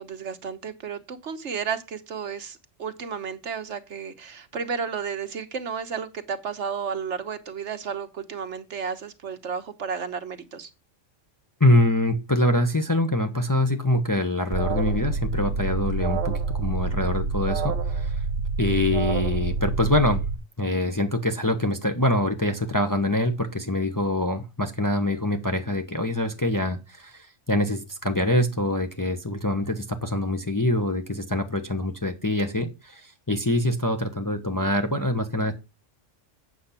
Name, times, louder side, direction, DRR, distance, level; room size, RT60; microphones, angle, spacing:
voice 1, 0.0-10.7, right 6 dB, 70° right, 1.4 m, -32 dB
voice 2, 11.6-18.1 18.6-20.2 20.6-35.5, left 1 dB, 15° left, 1.0 m, -24 dB
Alarm, 14.5-20.3, right 4 dB, 85° right, 1.6 m, -27 dB
8.6 x 6.8 x 5.7 m
omnidirectional pair, 1.3 m